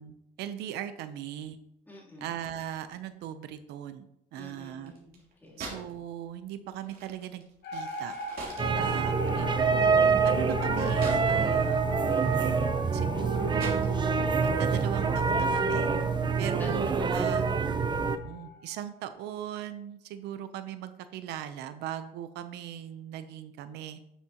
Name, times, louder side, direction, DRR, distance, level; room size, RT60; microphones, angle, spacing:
voice 1, 0.0-1.6 2.2-4.9 5.6-7.4 7.7-8.2 8.8-9.5 10.2-12.3 12.9-17.4 18.1-24.0, right 10 dB, 85° right, 11 dB, 0.6 m, -39 dB
voice 2, 1.9-2.3 4.3-5.6 8.6-8.9 16.1-17.2, left 1 dB, 10° left, -6 dB, 3.1 m, -45 dB
sound 1, 4.8-6.0 6.2-11.6 12.0-14.3, right 3 dB, 60° right, 3.1 m, -45 dB
Horror atmo, 7.6-18.8, left 5 dB, 70° left, 1.9 m, -40 dB
sound 2, 8.6-18.2, right 5 dB, 25° right, 0.6 m, -26 dB
9.9 x 7.3 x 2.9 m, 0.79 s
cardioid pair, 110°, 17 cm